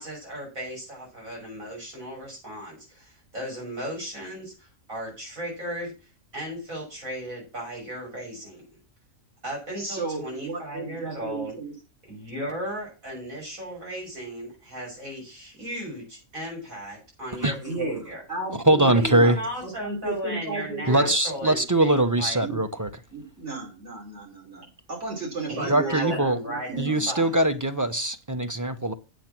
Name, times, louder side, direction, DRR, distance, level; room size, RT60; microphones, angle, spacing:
voice 1, 0.0-5.9 6.3-8.7 9.4-11.6 12.1-18.2 18.9-22.4 25.5-27.3, equal, 85° right, 6.5 m, -36 dB
voice 2, 9.8-11.7 17.6-18.0 18.3-19.4 19.6-21.1 22.4-22.6 23.1-27.1, right 3 dB, 60° right, 4.9 m, -33 dB
voice 3, 18.7-19.4 20.9-22.9 25.7-26.4 26.8-28.9, right 1 dB, 15° right, 0.8 m, -22 dB
8.4 x 7.8 x 6.0 m
omnidirectional pair, 1.4 m